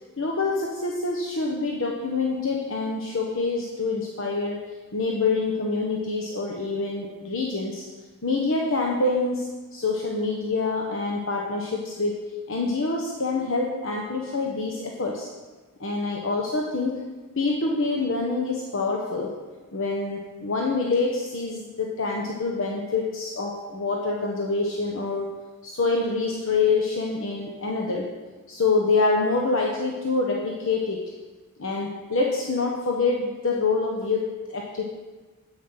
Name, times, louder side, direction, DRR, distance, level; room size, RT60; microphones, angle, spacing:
voice 1, 0.2-4.6 4.9-7.9 8.2-12.1 12.5-15.3 15.8-17.0 17.4-19.3 19.7-25.3 25.6-28.1 28.5-31.1 31.6-34.8, left 3 dB, 60° left, -1 dB, 1.1 m, -26 dB
9.8 x 8.5 x 5.7 m, 1.3 s
head